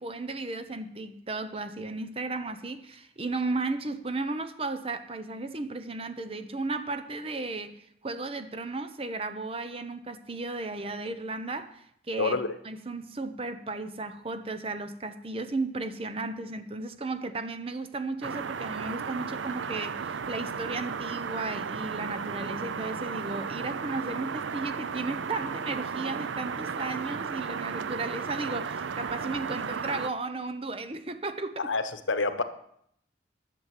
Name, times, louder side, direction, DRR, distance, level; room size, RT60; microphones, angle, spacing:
voice 1, 0.0-31.7, right 3 dB, 30° right, 10 dB, 0.8 m, -35 dB
voice 2, 12.2-12.5 31.6-32.4, left 3 dB, 85° left, 10 dB, 1.0 m, -27 dB
sound 1, 18.2-30.1, right 6 dB, 80° right, 0.5 m, -34 dB
11.5 x 7.1 x 7.5 m, 0.71 s
head